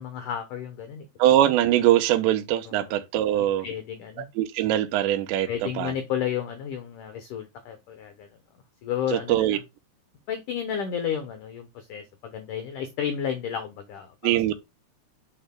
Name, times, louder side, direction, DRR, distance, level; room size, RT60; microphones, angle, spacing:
voice 1, 0.0-1.1 2.7-2.9 3.4-4.3 5.5-8.3 8.8-9.6 10.3-14.5, left 8 dB, 85° left, 1.8 m, -32 dB
voice 2, 1.2-3.7 4.4-5.5 5.8-5.9 9.1-9.6 14.2-14.5, right 13 dB, 85° right, 3.0 m, -22 dB
7.9 x 6.6 x 2.2 m
omnidirectional pair, 5.1 m